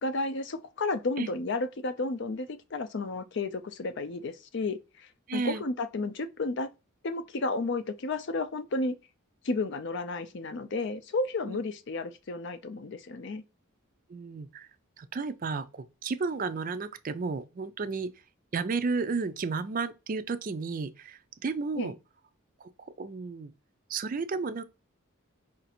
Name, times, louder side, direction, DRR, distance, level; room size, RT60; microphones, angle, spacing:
voice 1, 0.0-6.7 7.0-9.0 9.4-13.4 21.8-21.9, left 3 dB, 55° left, 0.5 m, -32 dB
voice 2, 5.3-5.6 11.5-11.6 14.1-14.7 15.0-18.1 18.5-21.9 22.6-23.5 23.9-24.6, right 4 dB, 40° right, 0.4 m, -33 dB
5.0 x 2.6 x 4.2 m
head